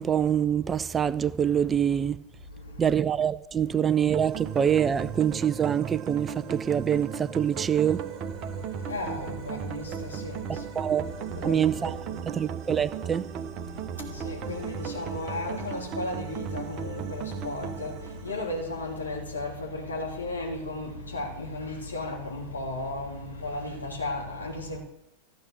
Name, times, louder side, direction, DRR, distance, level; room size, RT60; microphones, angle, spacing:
voice 1, 0.0-2.2 2.8-8.0 10.8-11.0 11.4-12.0 12.3-13.2, right 8 dB, 20° right, 0.5 m, -25 dB
voice 2, 2.5-2.9 8.4-10.9 11.3-12.4 13.6-24.8, left 2 dB, 75° left, 3.2 m, -35 dB
sound 1, 4.1-19.2, right 8 dB, 35° right, 1.3 m, -36 dB
14.5 x 8.5 x 6.6 m
figure-of-eight pair, 90°, 0 cm